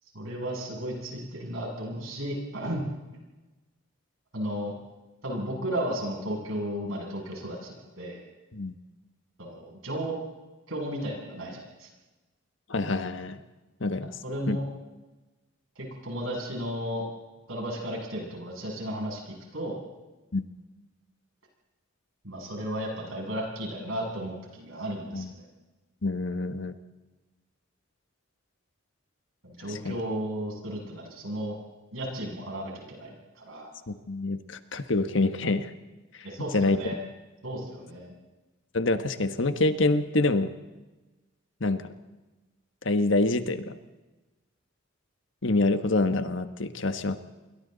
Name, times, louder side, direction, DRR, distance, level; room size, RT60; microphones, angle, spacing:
voice 1, 0.1-2.9 4.3-4.7 5.2-8.2 9.4-10.1 10.7-11.9 14.2-14.6 15.8-17.0 17.5-19.8 22.2-25.4 29.4-31.5 31.9-33.7 36.2-37.0 37.4-38.1, right 1 dB, 80° right, -1 dB, 7.9 m, -34 dB
voice 2, 12.7-13.4 13.8-14.1 14.5-14.6 20.3-20.4 25.1-25.3 26.0-26.7 29.7-30.0 33.9-35.7 36.5-36.8 38.7-40.5 41.6-41.9 42.8-43.7 45.4-47.2, left 2 dB, 65° left, 9 dB, 1.4 m, -26 dB
28.5 x 22.5 x 4.1 m, 1.2 s
head